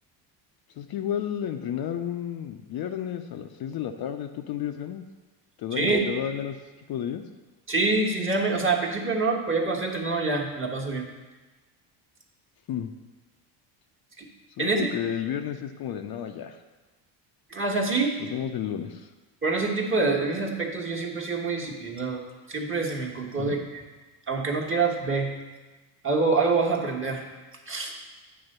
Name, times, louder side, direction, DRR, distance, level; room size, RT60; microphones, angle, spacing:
voice 1, 0.8-5.0 5.6-7.2 12.7-12.9 14.6-16.6 18.2-19.1 23.4-23.6, left 9 dB, 50° left, 6 dB, 0.6 m, -32 dB
voice 2, 5.7-6.0 7.7-11.0 14.2-14.3 14.6-14.9 17.5-18.2 19.4-22.2 22.5-23.8 24.3-25.3 26.0-27.2 27.7-27.9, right 3 dB, 25° right, 0 dB, 1.4 m, -26 dB
8.9 x 3.5 x 6.6 m, 1.2 s
supercardioid pair, 90°, 49 cm